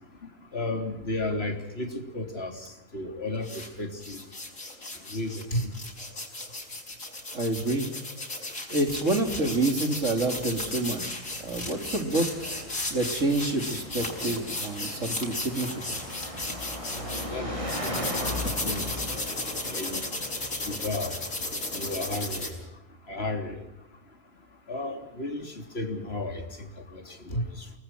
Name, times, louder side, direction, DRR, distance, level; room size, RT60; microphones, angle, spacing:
voice 1, 0.5-4.2 5.1-5.7 17.0-17.5 17.8-18.9 19.7-20.0 20.6-21.2 21.7-22.6 23.1-23.6 24.7-26.4 26.9-27.7, left 2 dB, 45° left, 4 dB, 3.6 m, -33 dB
sound 1, 3.4-3.7 4.0-17.3 17.7-22.5, left 2 dB, 70° left, 5.6 m, -35 dB
voice 2, 7.3-7.9 8.7-12.3 12.9-15.8, right 2 dB, 55° right, 6 dB, 3.6 m, -28 dB
Car passing by, 9.2-22.4, left 1 dB, 20° right, 6.6 m, -39 dB
29.0 x 20.0 x 6.0 m, 0.91 s
omnidirectional pair, 1.5 m